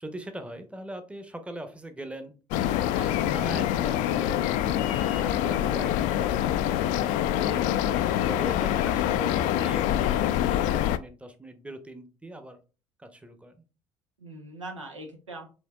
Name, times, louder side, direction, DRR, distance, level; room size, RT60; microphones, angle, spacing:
voice 1, 0.0-2.4 2.9-6.8 7.5-12.6 13.0-13.6, right 1 dB, 10° right, 8 dB, 0.8 m, -41 dB
sound 1, 2.5-11.0, left 11 dB, 55° left, 0.4 m, -25 dB
voice 2, 14.2-15.5, right 2 dB, 90° right, 2 dB, 0.8 m, -42 dB
5.3 x 3.4 x 2.3 m, 0.34 s
figure-of-eight pair, 55°, 15 cm